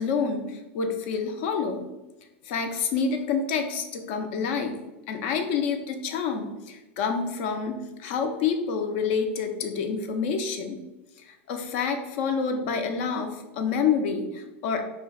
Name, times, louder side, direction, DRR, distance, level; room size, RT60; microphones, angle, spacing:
voice 1, 0.0-1.9 2.4-4.8 5.1-10.8 11.2-14.8, left 5 dB, 60° left, 5 dB, 0.4 m, -28 dB
2.4 x 2.2 x 3.6 m, 1.0 s
hypercardioid pair, 100°, 7 cm